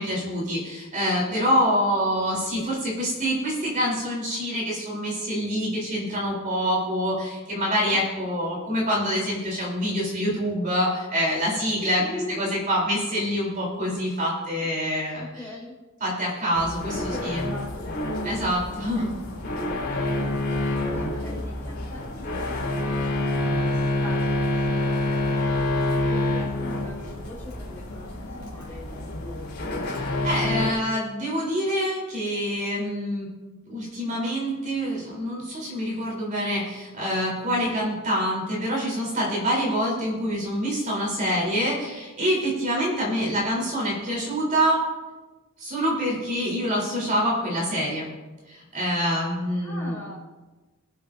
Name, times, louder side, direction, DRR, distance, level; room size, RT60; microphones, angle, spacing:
voice 1, 0.0-12.0 12.4-15.5 16.0-17.5 18.2-19.2 29.8-33.3 33.7-44.8 45.6-48.1 48.5-50.0, equal, 40° right, -4 dB, 3.5 m, -26 dB
voice 2, 12.0-12.6 15.1-15.8 17.0-18.0 18.8-19.1 19.8-23.0 23.4-25.4 25.7-28.8 42.7-42.9 49.6-50.2, left 1 dB, 10° left, -4 dB, 4.4 m, -41 dB
sound 1, 16.5-30.7, left 1 dB, 50° left, 3.9 m, -27 dB
23.0 x 8.3 x 2.6 m, 1.2 s
head